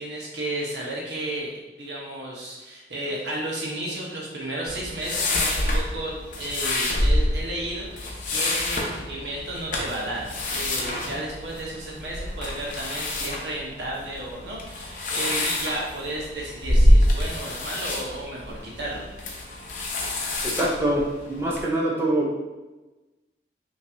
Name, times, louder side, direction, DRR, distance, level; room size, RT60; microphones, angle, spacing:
voice 1, 0.0-1.5 1.8-19.1, right 1 dB, 80° right, -4 dB, 1.2 m, -33 dB
sound 1, 4.7-21.6, left 1 dB, 45° left, 0.7 m, -26 dB
voice 2, 20.4-22.5, right 1 dB, 15° right, -4 dB, 0.6 m, -25 dB
5.6 x 3.0 x 2.6 m, 1.1 s
head